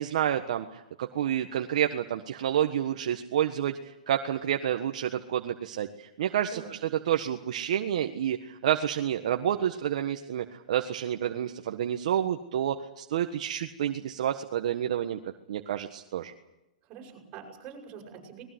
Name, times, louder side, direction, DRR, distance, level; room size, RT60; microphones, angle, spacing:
voice 1, 0.0-6.8 7.1-15.2 15.5-16.3, right 10 dB, 60° right, 5 dB, 1.5 m, -29 dB
voice 2, 16.8-18.4, right 7 dB, 25° right, 0 dB, 7.9 m, -44 dB
24.5 x 20.5 x 8.1 m, 0.90 s
hypercardioid pair, 150°, 4 cm